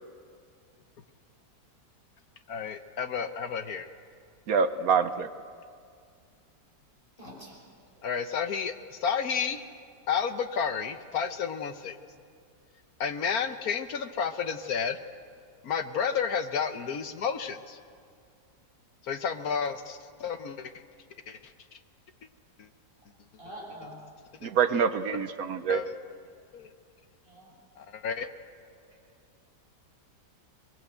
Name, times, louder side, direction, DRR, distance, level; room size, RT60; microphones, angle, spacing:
voice 1, 2.5-3.9 8.0-8.7 9.0-9.6 10.1-11.9 13.0-15.0 15.6-17.8 19.1-20.7 21.3-21.4 24.4-24.5 25.1-25.2 25.7-25.9 26.5-26.7 27.8-28.3, left 6 dB, 60° left, 9 dB, 1.4 m, -31 dB
voice 2, 4.5-5.3 24.4-25.8, right 6 dB, 60° right, 11 dB, 1.1 m, -26 dB
voice 3, 7.2-7.6 23.4-24.0 27.3-27.5 28.9-29.0, right 1 dB, 30° left, -4 dB, 5.7 m, -45 dB
22.5 x 22.0 x 8.0 m, 2.2 s
omnidirectional pair, 1.9 m